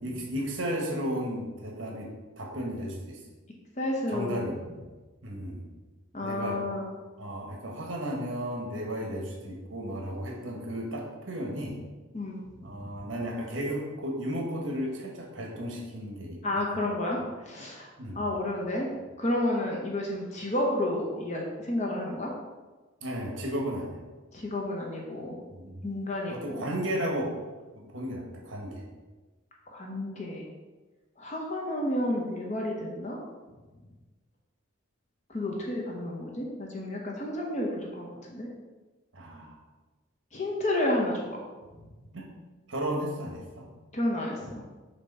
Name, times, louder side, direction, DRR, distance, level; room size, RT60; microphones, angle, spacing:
voice 1, 0.0-2.1 2.4-3.2 4.1-4.5 5.2-5.7 6.2-6.6 7.2-11.8 12.6-16.4 18.0-18.2 23.0-24.0 25.5-25.8 26.3-27.3 27.7-28.8 39.1-39.6 42.1-42.3 42.7-43.7, equal, 60° right, 0 dB, 1.2 m, -34 dB
voice 2, 3.8-4.4 6.1-6.9 12.1-12.4 12.8-13.0 16.4-17.9 18.1-18.9 19.2-22.3 24.3-25.4 25.8-26.6 29.7-30.4 31.2-33.2 35.3-38.5 40.3-41.4 43.9-44.6, left 1 dB, 35° left, -1 dB, 0.8 m, -31 dB
6.7 x 3.0 x 5.3 m, 1.2 s
head